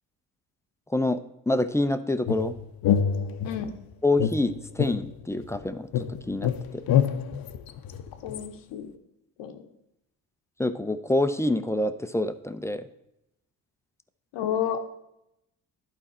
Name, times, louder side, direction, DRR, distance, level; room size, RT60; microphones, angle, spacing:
voice 1, 0.9-2.6 4.0-6.8 10.6-12.8, left 2 dB, 5° left, 11 dB, 0.4 m, -27 dB
sound 1, 2.3-3.7 4.2-5.6 5.9-8.5, left 8 dB, 55° left, 0.7 m, -27 dB
voice 2, 8.2-8.9 9.4-9.6 14.3-14.8, left 9 dB, 80° left, 7 dB, 1.0 m, -30 dB
11.5 x 4.4 x 4.2 m, 0.83 s
supercardioid pair, 55°, 42 cm